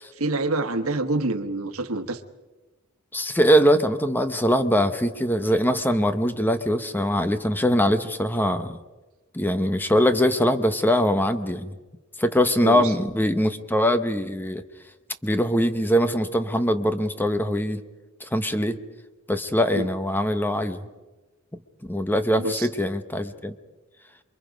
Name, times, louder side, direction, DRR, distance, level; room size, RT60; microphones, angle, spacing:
voice 1, 0.2-2.2 12.6-12.9 19.7-19.9 22.4-22.7, right 2 dB, 90° right, 9 dB, 1.3 m, -26 dB
voice 2, 3.1-8.8 9.3-11.7 12.2-14.6 15.2-17.8 18.2-18.8 19.3-20.8 21.8-23.5, equal, 10° left, 9 dB, 0.9 m, -22 dB
28.0 x 23.0 x 5.2 m, 1.2 s
head